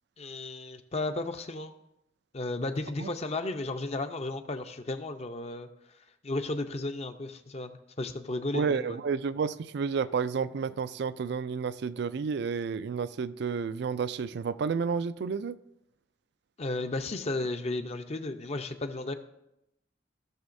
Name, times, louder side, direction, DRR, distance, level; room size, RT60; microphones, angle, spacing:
voice 1, 0.2-1.7 2.3-5.7 6.2-9.0 16.6-19.1, left 2 dB, 35° left, 0.6 m, -34 dB
voice 2, 8.5-15.6, right 5 dB, 65° right, 0.4 m, -31 dB
16.0 x 6.4 x 2.6 m
head